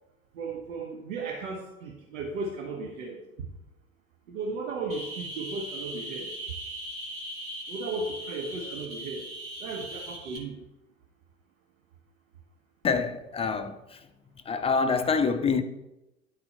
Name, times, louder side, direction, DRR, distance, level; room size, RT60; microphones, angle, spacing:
voice 1, 0.3-3.2 4.3-6.3 7.7-9.2 9.6-10.6, right 3 dB, 70° right, 1.2 m, -35 dB
sound 1, 4.9-10.4, right 1 dB, 30° right, 2.2 m, -39 dB
voice 2, 12.8-14.1 14.5-15.6, left 5 dB, 15° left, 0.5 m, -26 dB
10.5 x 4.3 x 4.3 m
figure-of-eight pair, 80°, 43 cm